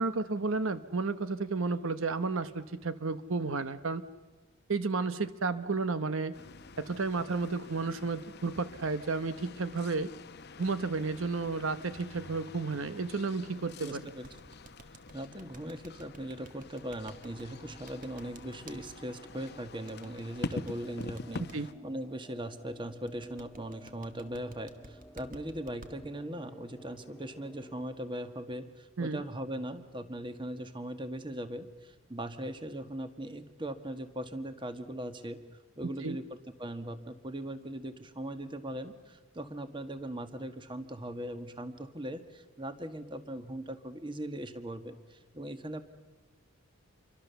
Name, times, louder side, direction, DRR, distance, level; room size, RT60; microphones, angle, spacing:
voice 1, 0.0-4.0 4.7-6.3 6.8-10.1 10.6-14.0 21.5-21.7 29.0-29.2 36.0-36.2, right 3 dB, 65° right, 12 dB, 0.9 m, -32 dB
sound 1, 6.3-21.7, left 3 dB, 50° left, 0.8 m, -46 dB
voice 2, 13.8-14.3 15.1-21.5 21.8-35.4 35.8-45.8, right 1 dB, 20° right, 9 dB, 1.5 m, -39 dB
sound 2, 14.2-18.8 19.9-21.6 23.1-25.9, right 2 dB, 40° right, 1.7 m, -52 dB
sound 3, 17.1-27.9, right 1 dB, 10° left, 1.9 m, -55 dB
28.0 x 24.0 x 6.9 m, 1.3 s
head